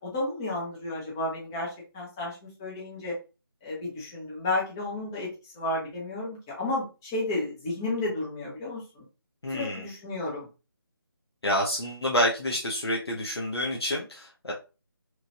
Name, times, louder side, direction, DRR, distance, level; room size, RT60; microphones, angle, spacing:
voice 1, 0.0-3.1 3.6-9.0 9.5-10.5, left 2 dB, 10° left, -4 dB, 0.5 m, -32 dB
voice 2, 9.4-9.9 11.4-14.5, equal, 85° left, -2 dB, 0.8 m, -28 dB
3.0 x 2.3 x 2.6 m, 0.32 s
figure-of-eight pair, 160°, 13 cm